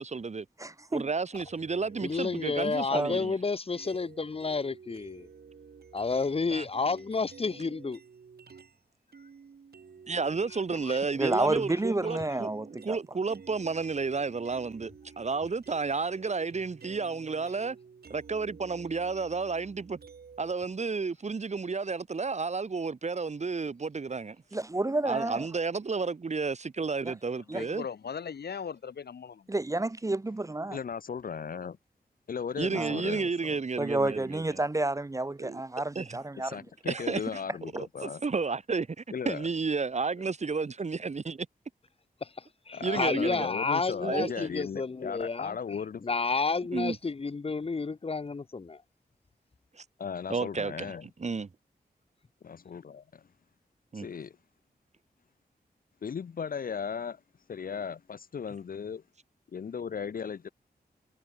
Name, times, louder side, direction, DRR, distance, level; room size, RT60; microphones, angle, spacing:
voice 1, 0.0-0.4 0.9-3.4 6.5-6.6 10.1-12.5 12.8-17.8 18.1-20.0 20.4-24.4 25.0-27.9 32.6-34.6 35.4-35.6 35.9-36.2 36.8-37.4 37.7-41.5 42.8-43.5 44.0-44.5 46.7-47.0 49.7-49.8 50.3-51.5 53.9-54.1, right 4 dB, 45° right, 1.3 m, -32 dB
voice 2, 0.6-1.1 2.9-3.2 11.2-13.0 24.5-25.5 27.1-27.2 27.5-27.6 29.5-30.8 32.7-33.0 33.8-36.7, right 2 dB, 20° right, 0.7 m, -30 dB
sound 1, 1.3-3.1 3.7-8.8 9.1-20.5, right 6 dB, 75° right, 7.4 m, -52 dB
voice 3, 2.0-5.3 5.9-8.0 10.8-11.0 12.1-12.2 42.2-45.6 46.0-48.8, left 4 dB, 35° left, 1.0 m, -31 dB
voice 4, 27.5-29.5, left 7 dB, 85° left, 2.4 m, -39 dB
voice 5, 30.7-31.8 32.3-33.6 36.4-38.2 39.1-39.5 42.7-46.0 50.0-51.0 52.4-53.2 53.9-54.3 56.0-57.2 57.5-59.0 59.5-60.5, left 6 dB, 60° left, 0.7 m, -36 dB
wide cardioid pair, 90°, 16 cm